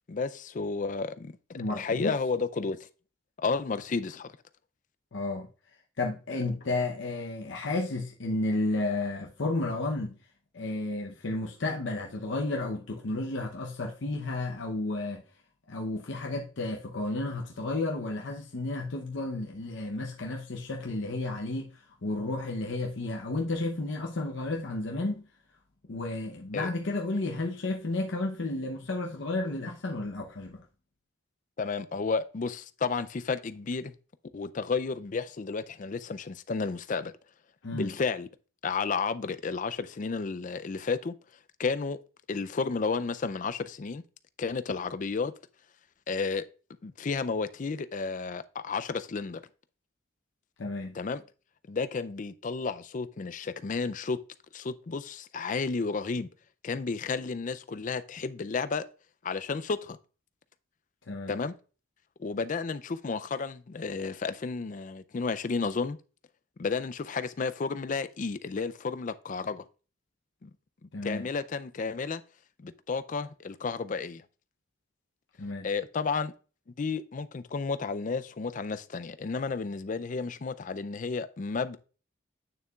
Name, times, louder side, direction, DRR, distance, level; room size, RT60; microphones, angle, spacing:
voice 1, 0.1-2.8 3.4-4.3 26.5-26.7 31.6-33.9 34.3-37.1 37.7-38.3 38.6-41.1 41.6-42.0 42.3-44.0 44.4-45.3 46.1-46.5 46.8-49.4 50.9-51.2 51.7-54.2 54.5-56.3 56.6-58.8 59.2-60.0 61.3-61.5 62.2-66.0 66.6-69.6 70.4-70.5 70.8-72.2 72.6-74.2 75.6-76.3 76.8-81.8, left 4 dB, 40° left, 0.4 m, -32 dB
voice 2, 1.5-2.2 5.1-5.5 6.0-10.2 10.5-15.2 15.7-25.3 25.9-30.6 37.6-37.9 50.6-50.9 61.1-61.3 70.9-71.2 75.4-75.7, left 2 dB, 70° left, 0.8 m, -32 dB
8.9 x 6.7 x 2.4 m
head